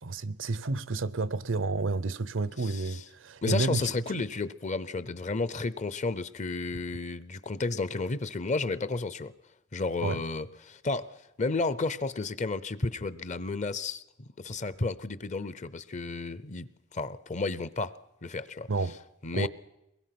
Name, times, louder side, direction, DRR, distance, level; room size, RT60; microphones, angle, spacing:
voice 1, 0.0-4.2 10.0-10.2 18.7-19.0 19.3-19.5, right 3 dB, 85° right, 0.7 m, -30 dB
voice 2, 2.6-3.0 3.4-9.3 9.7-14.0 14.4-18.7 19.2-19.5, left 3 dB, 40° left, 0.7 m, -32 dB
23.0 x 21.0 x 5.9 m
head